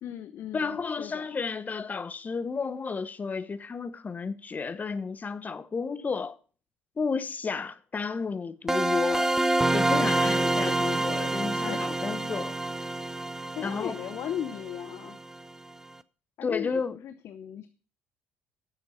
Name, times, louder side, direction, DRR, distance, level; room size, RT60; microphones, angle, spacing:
voice 1, 0.0-1.3 11.6-11.8 13.5-15.2 16.4-17.7, left 10 dB, 60° left, 0.8 m, -37 dB
voice 2, 0.5-6.4 7.0-9.3 9.7-12.5 13.6-14.0 16.4-16.9, left 5 dB, 30° left, 1.0 m, -32 dB
sound 1, 8.7-15.3, right 2 dB, 10° right, 0.6 m, -27 dB
11.0 x 7.0 x 5.7 m
hypercardioid pair, 60°, 5 cm